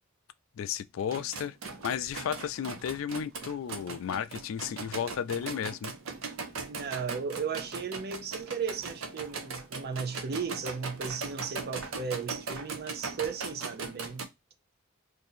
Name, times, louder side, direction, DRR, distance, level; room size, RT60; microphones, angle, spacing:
voice 1, 0.6-1.6 1.8-5.9, left 8 dB, 70° left, 0.3 m, -33 dB
sound 1, 1.0-14.2, right 4 dB, 85° right, 0.7 m, -39 dB
voice 2, 6.7-14.3, right 6 dB, 50° right, 0.5 m, -35 dB
2.7 x 2.6 x 4.1 m
head